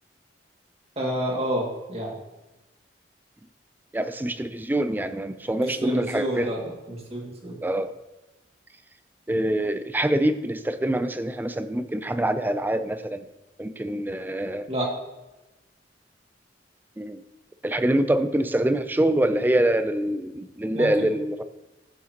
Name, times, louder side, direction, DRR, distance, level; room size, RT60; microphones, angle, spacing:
voice 1, 1.0-2.2 5.6-7.6 14.7-14.9 20.7-21.1, equal, 35° right, -1 dB, 2.0 m, -29 dB
voice 2, 3.9-6.5 7.6-7.9 9.3-13.2 13.6-14.7 17.0-17.2 17.6-21.4, right 1 dB, 10° right, 10 dB, 0.4 m, -25 dB
14.5 x 6.6 x 2.9 m, 1.0 s
head